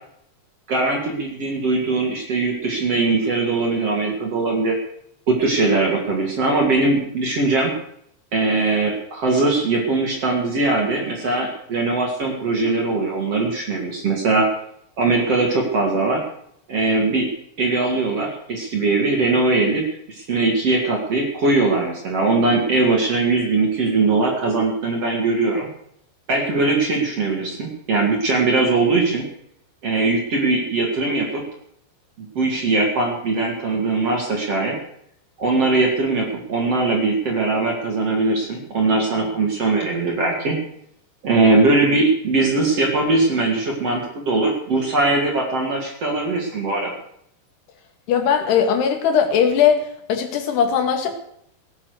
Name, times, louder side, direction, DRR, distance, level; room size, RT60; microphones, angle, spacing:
voice 1, 0.7-4.8 5.3-7.7 8.3-14.5 15.0-16.2 16.7-17.3 17.6-25.7 26.3-29.2 29.8-31.4 32.2-34.8 35.4-40.6 41.2-46.9, right 3 dB, 40° right, 1 dB, 3.0 m, -20 dB
voice 2, 48.1-49.8 50.1-51.1, left 7 dB, 75° left, 6 dB, 4.1 m, -18 dB
19.5 x 9.7 x 6.6 m, 0.70 s
omnidirectional pair, 5.0 m